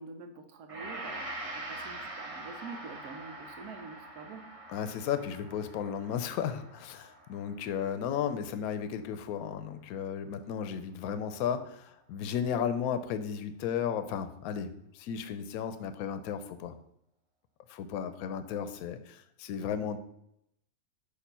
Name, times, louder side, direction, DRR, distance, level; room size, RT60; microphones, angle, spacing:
voice 1, 0.0-4.4, right 4 dB, 85° right, 6 dB, 1.3 m, -46 dB
Gong, 0.7-9.1 9.5-9.6, right 2 dB, 35° right, 0.6 m, -44 dB
voice 2, 4.7-16.7 17.7-20.0, left 8 dB, 75° left, 10 dB, 1.0 m, -34 dB
6.7 x 2.7 x 5.3 m, 0.77 s
omnidirectional pair, 1.6 m